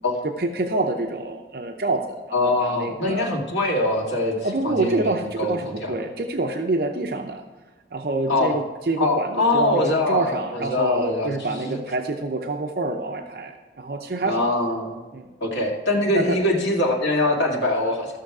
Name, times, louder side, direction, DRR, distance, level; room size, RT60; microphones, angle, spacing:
voice 1, 0.2-3.3 4.4-7.4 7.9-14.5 15.1-15.3 16.1-16.4, right 2 dB, 55° right, 4 dB, 0.6 m, -27 dB
voice 2, 2.3-4.4 4.6-5.9 8.3-8.6 9.0-11.8 14.2-15.0 15.4-18.1, left 2 dB, 90° left, -2 dB, 2.1 m, -23 dB
14.0 x 6.7 x 4.8 m, 1.2 s
head